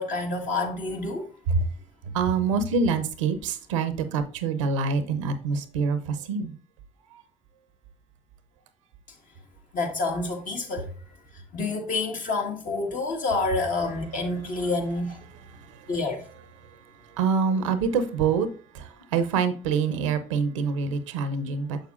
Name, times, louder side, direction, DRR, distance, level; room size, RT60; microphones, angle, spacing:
voice 1, 0.0-1.3 9.7-10.9 11.5-15.2 15.9-16.3, left 3 dB, 60° left, 1.6 m, -28 dB
voice 2, 2.1-6.5 17.2-18.5 18.7-21.8, right 5 dB, 90° right, 0.6 m, -25 dB
6.5 x 6.4 x 2.4 m
hypercardioid pair, 50°, 16 cm